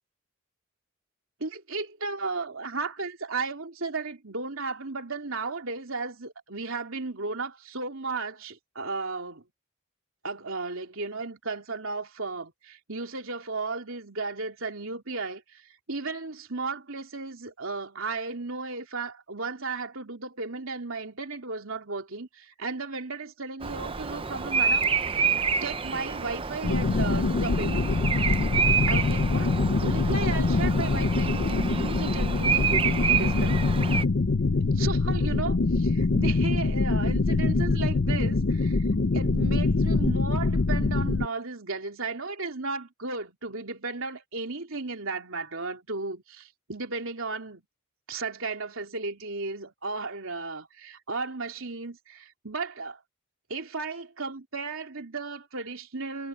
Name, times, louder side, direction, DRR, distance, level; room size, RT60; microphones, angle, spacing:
voice 1, 1.4-9.4 10.2-25.3 25.6-27.9 28.9-29.5 29.8-33.6 34.7-38.8 39.1-47.6 48.1-53.0 53.5-56.3, right 3 dB, 70° right, 3.1 m, -35 dB
Bird vocalization bird call bird song, 23.6-34.0, right 6 dB, 25° right, 0.6 m, -28 dB
sound 1, 26.6-41.3, left 3 dB, 55° left, 0.6 m, -24 dB
head